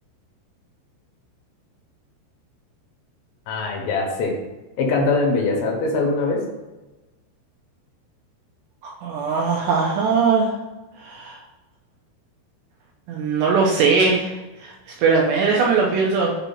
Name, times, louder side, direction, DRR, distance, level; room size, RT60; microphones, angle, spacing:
voice 1, 3.5-4.3 4.8-6.4, left 3 dB, 75° left, 0 dB, 3.2 m, -22 dB
voice 2, 8.8-10.5 11.0-11.4 13.1-16.4, right 4 dB, 80° right, -2 dB, 2.5 m, -20 dB
7.2 x 2.8 x 5.5 m, 1.1 s
omnidirectional pair, 5.5 m